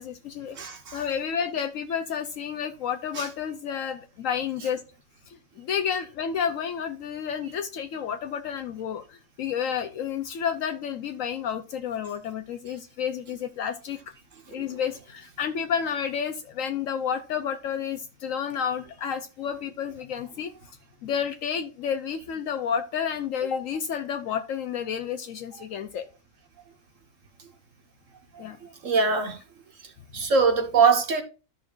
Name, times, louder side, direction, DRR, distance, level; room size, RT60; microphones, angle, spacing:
voice 1, 0.0-0.6 0.9-4.8 5.3-14.0 14.5-20.5 21.0-26.0 28.4-28.6, left 7 dB, 75° left, 1.1 m, -30 dB
voice 2, 0.6-1.0 3.2-3.3 14.5-14.6 28.8-29.4 30.1-31.2, right 5 dB, 65° right, 1.7 m, -22 dB
13.5 x 5.7 x 2.5 m
omnidirectional pair, 1.4 m